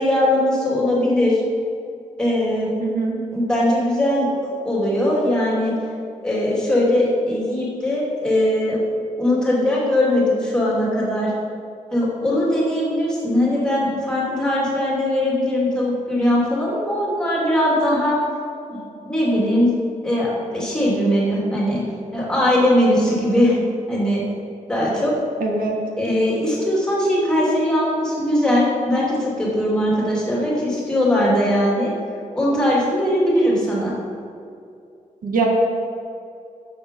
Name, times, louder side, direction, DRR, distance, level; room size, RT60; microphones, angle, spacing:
voice 1, 0.0-1.4 2.2-2.8 3.3-5.7 6.2-8.8 9.1-11.3 11.9-18.2 18.7-18.8 19.1-19.7 20.0-21.8 22.1-23.6 23.9-24.2 24.7-25.1 26.0-31.9 32.3-33.9, left 1 dB, 5° left, -6 dB, 2.7 m, -20 dB
voice 2, 2.8-3.2 25.4-25.8 35.2-35.5, right 4 dB, 80° right, 0 dB, 1.8 m, -22 dB
11.0 x 7.7 x 5.4 m, 2.5 s
wide cardioid pair, 170°, 14 cm